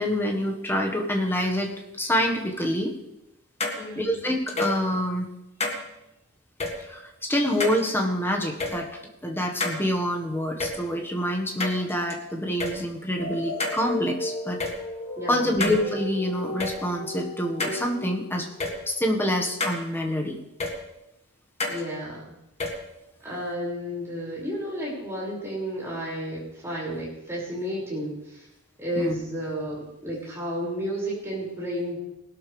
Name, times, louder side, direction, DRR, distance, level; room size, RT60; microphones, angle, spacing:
voice 1, 0.0-1.7 2.0-3.0 3.9-5.3 6.9-14.6 15.3-18.5 18.9-20.4 29.0-29.2, equal, 10° left, 1 dB, 1.5 m, -26 dB
sound 1, 3.6-3.8 4.5-4.8 5.6-5.8 6.6-6.7 7.6-7.8 8.6-8.7 9.6-9.8 10.6-10.7 11.6-12.1 12.6-12.7 13.6-13.8 14.6-14.7 15.6-15.8 16.6-16.7 17.6-17.8 18.6-18.7 19.6-19.8 20.6-20.7 21.6-21.8 22.6-22.7, left 2 dB, 30° left, 1.6 m, -28 dB
voice 2, 3.8-4.2 15.2-15.6 21.7-22.3 23.2-28.5 28.8-32.0, equal, 10° right, -6 dB, 5.7 m, -32 dB
sound 2, 13.2-18.8, left 1 dB, 70° left, 2.7 m, -34 dB
19.5 x 12.0 x 3.4 m, 0.88 s
head